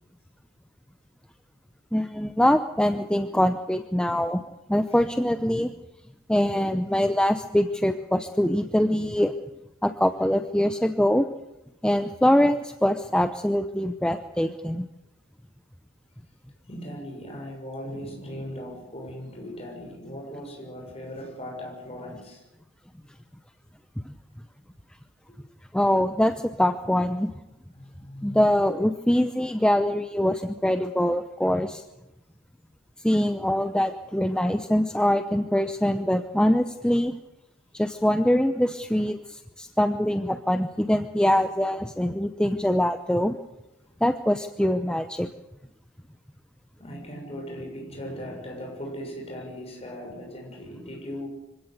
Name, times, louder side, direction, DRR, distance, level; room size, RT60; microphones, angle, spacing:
voice 1, 1.9-4.4 4.7-5.7 6.3-9.3 9.8-11.3 11.8-14.9 24.1-24.2 25.7-27.3 28.2-31.8 33.0-37.1 37.7-43.4 44.0-45.3, equal, 5° left, 8 dB, 0.7 m, -23 dB
voice 2, 16.7-22.4 25.3-25.4 27.7-28.4 46.8-51.3, equal, 30° left, 1 dB, 6.9 m, -38 dB
25.5 x 17.0 x 8.2 m, 0.93 s
head